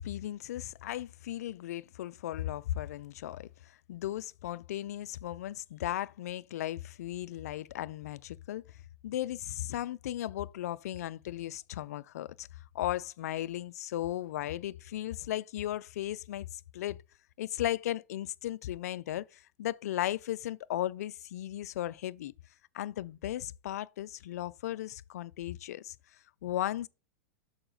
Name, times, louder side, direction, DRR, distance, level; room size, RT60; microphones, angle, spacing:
voice 1, 0.0-8.6 9.0-12.5 12.7-17.0 17.4-22.3 22.7-26.0 26.4-26.9, left 13 dB, 70° left, 0.4 m, -36 dB
6.7 x 4.9 x 3.8 m
hypercardioid pair, 100°, 9 cm